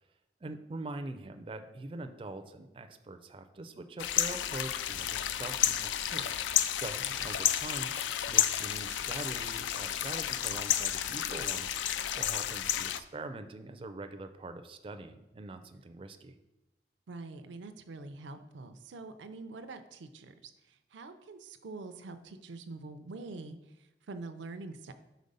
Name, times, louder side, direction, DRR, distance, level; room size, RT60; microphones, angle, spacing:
voice 1, 0.4-6.3 6.7-7.9 8.3-16.4, right 2 dB, 30° right, 8 dB, 0.4 m, -43 dB
sound 1, 4.0-13.0, left 10 dB, 90° left, 0.3 m, -31 dB
voice 2, 17.1-24.9, right 3 dB, 90° right, 9 dB, 0.5 m, -45 dB
5.1 x 4.2 x 5.3 m, 0.98 s
head